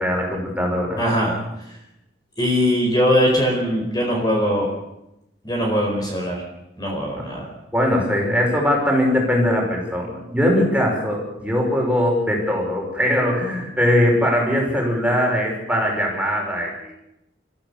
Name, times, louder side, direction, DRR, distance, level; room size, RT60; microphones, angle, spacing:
voice 1, 0.0-1.0 7.7-16.9, equal, 5° right, -1 dB, 5.8 m, -21 dB
voice 2, 1.0-1.3 2.4-4.7 5.4-6.4 6.8-7.5, equal, 20° left, 0 dB, 4.7 m, -20 dB
29.5 x 15.0 x 7.3 m, 0.88 s
head